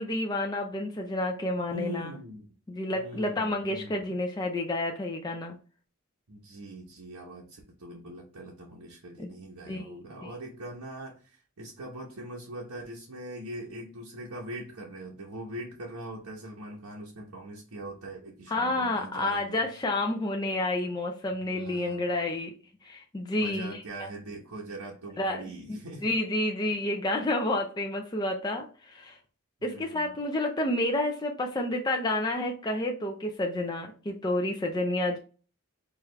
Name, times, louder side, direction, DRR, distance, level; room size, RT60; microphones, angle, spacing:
voice 1, 0.0-2.1 2.7-5.6 9.2-9.3 9.7-10.0 18.5-22.5 22.8-24.1 25.2-25.4 25.7-29.2 29.6-35.2, left 1 dB, 20° left, 1 dB, 0.4 m, -30 dB
voice 2, 1.7-2.4 3.0-4.0 6.3-19.6 21.4-22.1 23.4-26.1 29.6-30.1, right 1 dB, 90° right, -4 dB, 0.9 m, -42 dB
4.7 x 2.4 x 3.2 m, 0.38 s
head